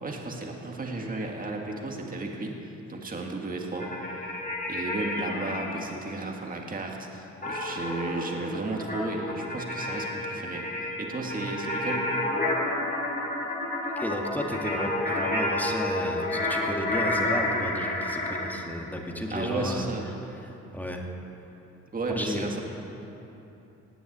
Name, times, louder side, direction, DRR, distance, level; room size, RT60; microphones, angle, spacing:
voice 1, 0.0-3.9 4.7-12.2 19.3-20.0 21.9-22.6, right 2 dB, 30° right, 1 dB, 1.8 m, -33 dB
sound 1, 3.7-5.8 7.4-18.5, left 1 dB, 30° left, 3.4 m, -30 dB
voice 2, 14.0-19.9 20.4-21.0 22.1-22.5, left 1 dB, 5° left, 1 dB, 1.9 m, -33 dB
18.5 x 7.1 x 8.7 m, 3.0 s
cardioid pair, 90°, 30 cm